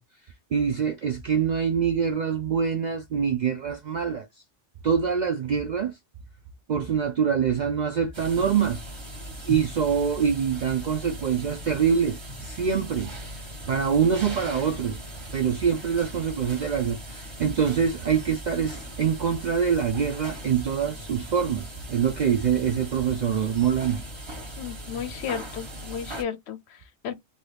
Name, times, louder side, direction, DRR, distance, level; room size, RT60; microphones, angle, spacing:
voice 1, 0.5-4.3 4.8-6.0 6.7-8.8 9.4-13.1 13.7-15.0 15.3-24.0, right 7 dB, 65° right, 0.4 m, -25 dB
sound 1, 8.1-26.2, right 1 dB, 25° right, 1.0 m, -39 dB
voice 2, 24.6-27.2, left 8 dB, 70° left, 0.8 m, -34 dB
2.8 x 2.7 x 3.2 m
omnidirectional pair, 1.2 m